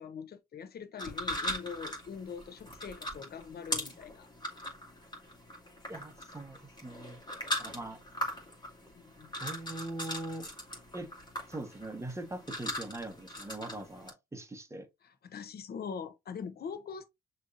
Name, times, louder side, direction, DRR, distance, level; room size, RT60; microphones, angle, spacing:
voice 1, 0.0-4.3 8.9-9.3 15.0-17.1, left 6 dB, 50° left, 1.0 m, -43 dB
sound 1, 1.0-14.1, left 1 dB, 20° left, 2.2 m, -40 dB
voice 2, 5.9-7.2 7.6-8.0 9.4-10.5 10.9-11.1 11.5-14.9, right 2 dB, 15° right, 1.2 m, -41 dB
6.1 x 3.2 x 2.7 m
cardioid pair, 90°, 20 cm